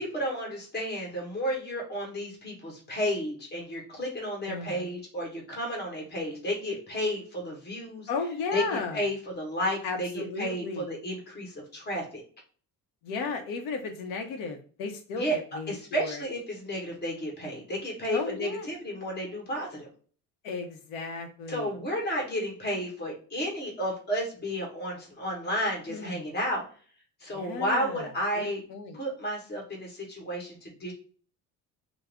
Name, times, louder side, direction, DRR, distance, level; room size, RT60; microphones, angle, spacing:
voice 1, 0.0-8.1 8.5-12.2 15.2-15.4 15.7-19.9 21.5-26.6 27.2-28.6 28.9-30.9, equal, 30° left, 0 dB, 1.4 m, -32 dB
voice 2, 4.5-4.9 8.1-9.0 9.8-10.9 13.0-16.2 18.1-18.7 20.4-21.7 25.9-26.2 27.3-29.0, left 4 dB, 90° left, 3 dB, 0.7 m, -35 dB
3.5 x 2.0 x 3.4 m, 0.43 s
cardioid pair, 150°, 32 cm